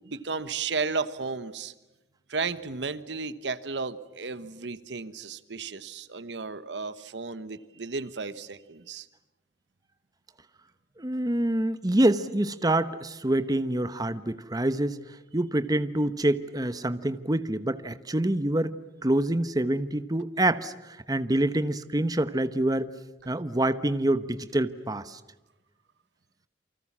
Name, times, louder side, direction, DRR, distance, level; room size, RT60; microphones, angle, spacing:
voice 1, 0.0-1.7 2.3-9.1, right 4 dB, 90° right, 14 dB, 1.2 m, -34 dB
voice 2, 11.0-18.7 19.0-22.9 23.3-25.2, right 1 dB, 20° right, 12 dB, 1.0 m, -26 dB
29.0 x 25.0 x 7.4 m, 1.0 s
head